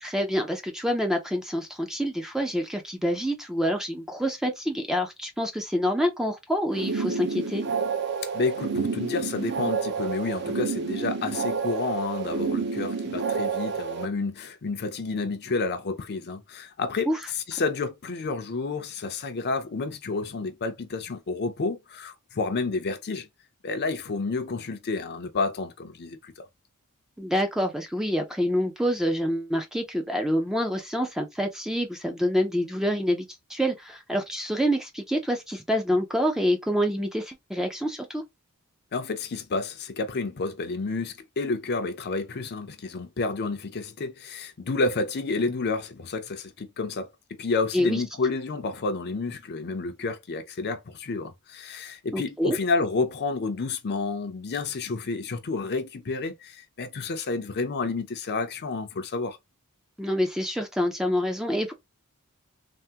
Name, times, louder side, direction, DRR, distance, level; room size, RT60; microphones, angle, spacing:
voice 1, 0.0-7.6 17.1-17.2 27.2-38.2 47.7-48.0 52.1-52.6 60.0-61.7, equal, ahead, 0.4 m, -27 dB
sound 1, 6.7-14.1, right 5 dB, 50° right, 0.7 m, -29 dB
voice 2, 8.3-17.1 17.5-23.3 23.6-26.3 38.9-47.1 47.4-59.4, left 3 dB, 50° left, 0.5 m, -30 dB
3.4 x 2.1 x 2.7 m
head